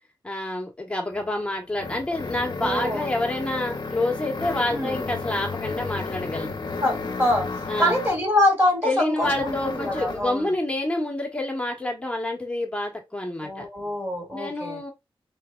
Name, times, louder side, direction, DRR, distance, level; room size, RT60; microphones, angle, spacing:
voice 1, 0.2-6.6 7.7-8.0 8.8-13.6 14.3-14.9, left 1 dB, 10° left, 1.2 m, -28 dB
sound 1, 1.1-8.3 9.2-10.3, left 4 dB, 50° left, 0.8 m, -33 dB
voice 2, 2.6-3.1 4.7-5.0 6.8-7.5 7.8-10.5 13.4-14.8, left 1 dB, 25° right, 2.3 m, -24 dB
4.8 x 3.1 x 2.4 m
wide cardioid pair, 100°, 9 cm